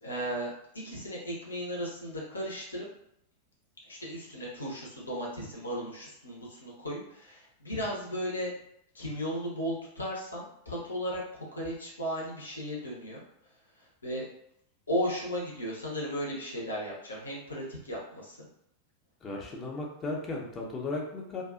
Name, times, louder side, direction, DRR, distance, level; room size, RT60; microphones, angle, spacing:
voice 1, 0.0-2.9 3.9-8.5 8.9-13.2 14.0-14.3 14.9-18.4, equal, 75° left, -3 dB, 0.8 m, -35 dB
voice 2, 19.2-21.4, left 2 dB, 25° left, -1 dB, 0.7 m, -35 dB
2.6 x 2.4 x 2.4 m, 0.74 s
figure-of-eight pair, 90°, 0 cm